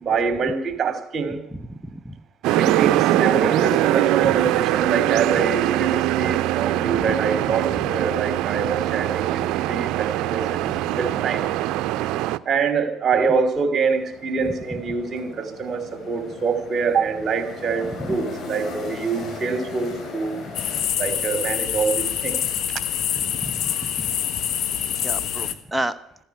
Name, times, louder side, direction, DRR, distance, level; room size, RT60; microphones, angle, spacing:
voice 1, 0.0-1.4 2.5-9.4 9.7-10.4 10.8-11.5 12.5-20.3 21.0-22.4, right 5 dB, 45° right, 10 dB, 2.8 m, -25 dB
voice 2, 1.7-2.2 4.2-4.3 5.3-5.4 7.0-7.1 14.4-14.5 23.2-24.1 24.8-26.0, right 1 dB, 5° right, 9 dB, 1.0 m, -32 dB
sound 1, 2.4-12.4, right 14 dB, 75° right, 0.5 m, -22 dB
sound 2, 13.8-20.8, left 4 dB, 50° left, 5.0 m, -37 dB
sound 3, 20.5-25.5, left 10 dB, 65° left, 1.5 m, -26 dB
14.5 x 10.0 x 9.1 m, 0.78 s
supercardioid pair, 85°, 0 cm